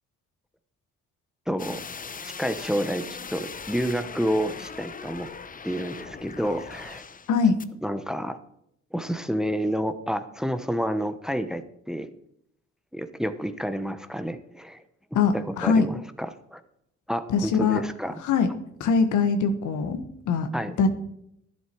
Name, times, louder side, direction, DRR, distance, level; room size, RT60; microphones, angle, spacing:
voice 1, 1.5-1.8 2.4-5.3 5.6-7.0 7.8-8.4 8.9-12.1 12.9-14.8 15.3-16.6 17.1-18.1 20.5-20.7, equal, ahead, 11 dB, 0.9 m, -29 dB
sound 1, 1.6-7.3 7.6-7.7, left 5 dB, 30° left, 0.8 m, -40 dB
voice 2, 15.1-15.9 17.3-17.8 18.2-18.5 18.8-20.5 20.8-20.9, left 5 dB, 80° left, 8 dB, 1.5 m, -22 dB
11.5 x 11.0 x 4.6 m, 0.75 s
cardioid pair, 90°, 30 cm